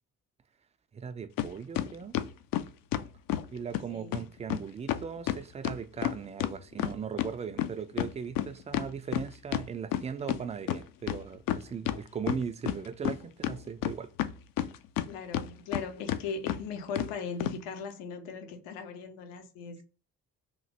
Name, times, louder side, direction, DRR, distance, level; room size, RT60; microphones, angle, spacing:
voice 1, 0.9-2.2 3.5-14.1, right 6 dB, 15° right, 0.3 m, -38 dB
sound 1, 1.4-1.5 1.8-3.5 3.7-3.8 4.1-4.2 4.5-4.6 4.9-7.3 7.6-10.4 10.7-10.8 11.1-12.0 12.3-13.2 13.4-15.1 15.3-15.8 16.1-16.2 16.5-16.6 17.0-17.1 17.4-17.6, left 12 dB, 50° left, 0.5 m, -30 dB
voice 2, 3.9-4.2 15.1-19.8, left 5 dB, 65° left, 0.8 m, -39 dB
3.0 x 2.5 x 2.8 m
figure-of-eight pair, 40°, 46 cm